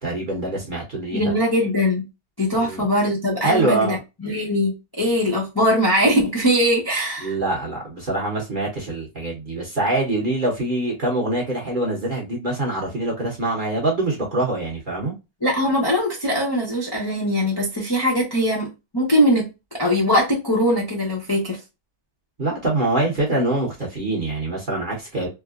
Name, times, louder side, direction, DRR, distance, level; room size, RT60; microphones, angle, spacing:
voice 1, 0.0-1.4 2.6-2.8 3.4-4.0 7.2-15.1 22.4-25.3, right 2 dB, 40° right, 0.9 m, -24 dB
voice 2, 1.1-2.0 2.4-7.3 15.4-21.6, equal, 30° left, 0.4 m, -21 dB
3.4 x 2.1 x 2.3 m
omnidirectional pair, 1.9 m